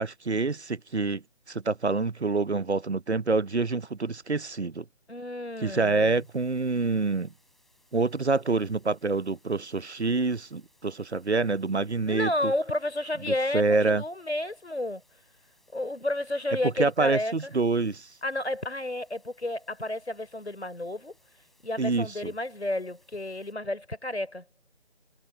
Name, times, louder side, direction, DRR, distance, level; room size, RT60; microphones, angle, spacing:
voice 1, 0.0-4.8 5.6-7.3 7.9-12.5 13.3-14.0 16.8-18.1 21.8-22.3, right 3 dB, 90° right, 0.9 m, -27 dB
voice 2, 5.1-6.2 12.1-15.0 15.7-17.5 18.2-21.2 21.6-24.4, left 1 dB, 85° left, 4.0 m, -31 dB
sound 1, 5.5-23.5, left 1 dB, ahead, 5.4 m, -67 dB
figure-of-eight pair, 155°, 32 cm